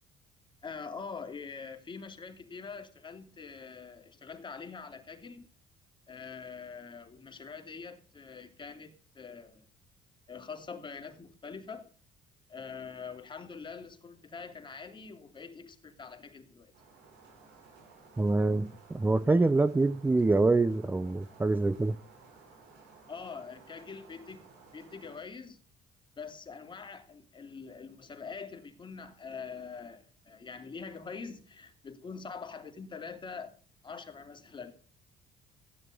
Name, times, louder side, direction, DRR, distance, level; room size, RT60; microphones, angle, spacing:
voice 1, 0.6-5.5 6.1-9.7 10.3-11.9 12.5-16.7 23.1-25.6 26.2-33.5 33.8-34.7, left 5 dB, 30° left, 3.0 m, -44 dB
sound 1, 16.7-25.2, right 4 dB, 85° right, 7.8 m, -57 dB
voice 2, 18.2-22.0, right 3 dB, 10° right, 0.6 m, -25 dB
16.0 x 11.0 x 5.4 m
cardioid pair, 110°, 17 cm